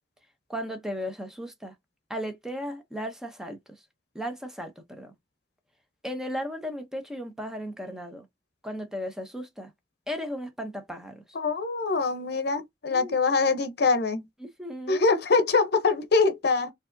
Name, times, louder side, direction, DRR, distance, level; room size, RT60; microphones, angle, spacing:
voice 1, 0.5-1.8 2.1-3.8 4.1-5.1 6.0-8.3 8.6-9.7 10.1-11.2 12.9-13.2 14.4-15.1, equal, 5° right, 0.7 m, -35 dB
voice 2, 11.3-14.2 14.9-16.7, left 4 dB, 65° left, 0.7 m, -24 dB
4.5 x 2.8 x 2.6 m
head